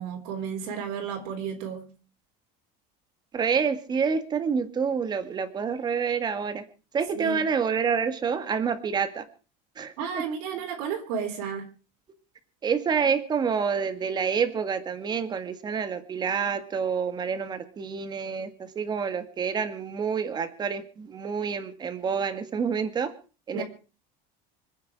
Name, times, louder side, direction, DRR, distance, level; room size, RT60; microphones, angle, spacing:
voice 1, 0.0-1.9 7.1-7.4 10.0-11.7 23.5-23.6, right 7 dB, 75° right, 3.8 m, -32 dB
voice 2, 3.3-6.6 6.9-9.2 9.8-10.2 12.6-18.5 18.8-23.1 23.5-23.6, right 6 dB, 20° right, 1.8 m, -28 dB
25.5 x 9.5 x 4.7 m
cardioid pair, 160°, 19 cm